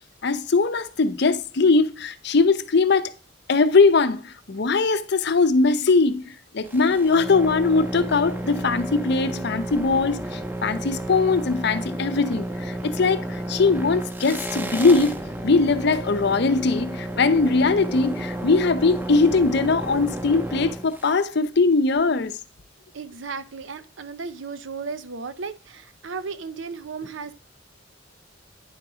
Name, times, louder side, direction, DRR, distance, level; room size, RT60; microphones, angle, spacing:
voice 1, 0.2-3.1 3.5-22.4, left 4 dB, 60° left, 0.6 m, -21 dB
sound 1, 6.6-21.2, right 1 dB, 10° right, 0.6 m, -32 dB
voice 2, 22.9-27.3, right 5 dB, 85° right, 0.7 m, -35 dB
9.8 x 3.9 x 4.8 m
head